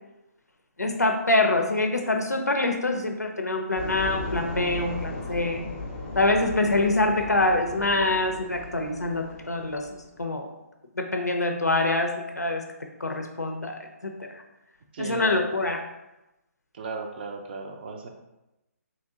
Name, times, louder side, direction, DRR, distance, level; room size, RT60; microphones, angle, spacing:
voice 1, 0.8-5.6 6.2-10.5 11.0-12.6 13.0-14.3 15.0-15.8, left 2 dB, 85° left, 4 dB, 0.5 m, -25 dB
sound 1, 3.8-10.1, left 2 dB, 35° left, 0.6 m, -36 dB
voice 2, 14.9-15.4 16.7-18.1, right 4 dB, 35° right, 4 dB, 0.5 m, -35 dB
3.1 x 2.7 x 3.7 m, 0.95 s
figure-of-eight pair, 140°, 9 cm